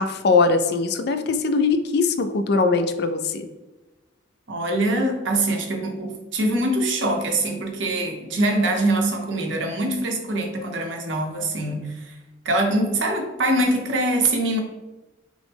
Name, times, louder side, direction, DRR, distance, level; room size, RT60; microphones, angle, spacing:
voice 1, 0.0-3.5, left 4 dB, 55° left, 9 dB, 0.3 m, -21 dB
voice 2, 4.5-12.1 12.4-14.6, right 1 dB, 70° right, 3 dB, 0.8 m, -23 dB
6.1 x 2.1 x 3.4 m, 1.1 s
head